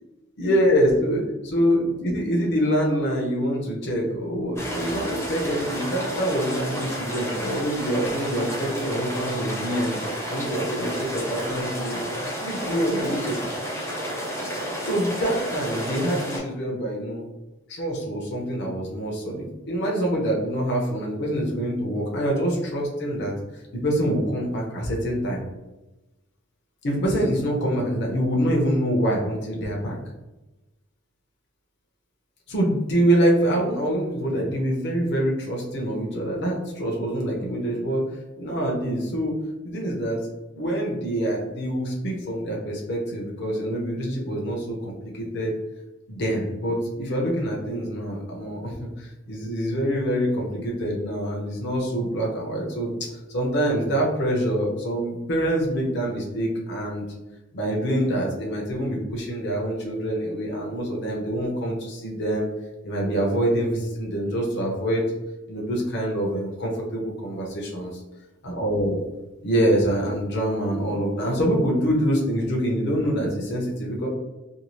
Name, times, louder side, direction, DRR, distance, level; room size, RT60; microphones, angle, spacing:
voice 1, 0.4-10.0 10.3-13.5 14.8-17.2 17.7-25.4 26.8-30.0 32.5-38.0 38.4-39.4 39.6-40.2 40.6-45.5 46.1-57.0 57.5-62.5 62.8-65.0 65.5-68.0 68.4-69.0 69.4-74.1, equal, 60° left, -2 dB, 0.7 m, -25 dB
sound 1, 4.6-16.4, equal, 15° left, 0.6 m, -31 dB
2.6 x 2.4 x 3.0 m, 1.0 s
head